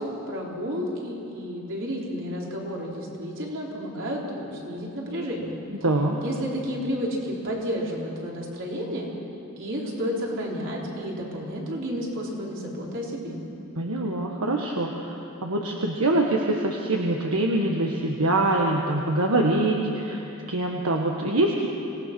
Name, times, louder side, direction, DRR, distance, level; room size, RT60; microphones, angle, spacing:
voice 1, 0.0-5.5 6.2-9.1 9.6-13.4, equal, 60° right, -3 dB, 4.0 m, -31 dB
voice 2, 5.8-6.2 13.8-20.2 20.5-21.7, right 2 dB, 80° right, 0 dB, 1.5 m, -24 dB
25.5 x 18.5 x 6.1 m, 2.9 s
head